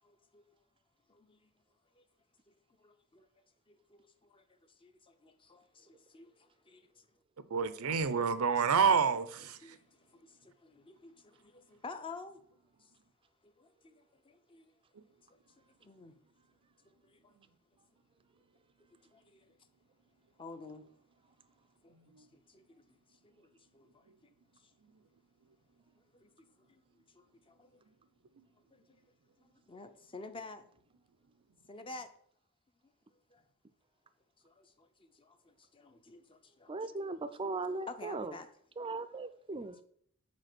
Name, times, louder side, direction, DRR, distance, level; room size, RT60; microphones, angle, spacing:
voice 1, 0.0-0.4 1.1-1.5 2.0-2.1 2.8-3.3 3.7-4.0 4.3-4.4 4.8-6.8 9.6-9.8 10.1-12.4 13.4-14.7 15.8-16.2 17.0-17.3 19.1-19.5 20.4-20.9 21.8-21.9 22.3-22.6 23.2-23.5 23.7-24.1 26.1-26.3 26.7-26.8 27.1-27.8 28.7-28.8 29.7-30.6 31.7-32.1 33.3-33.4 34.4-37.1 37.4-38.5, left 3 dB, 25° left, 0.6 m, -51 dB
voice 2, 7.5-9.8 22.1-22.3, right 6 dB, 90° right, 0.6 m, -28 dB
voice 3, 36.7-38.3 38.8-39.8, right 3 dB, 25° right, 0.4 m, -38 dB
5.3 x 4.5 x 6.0 m
head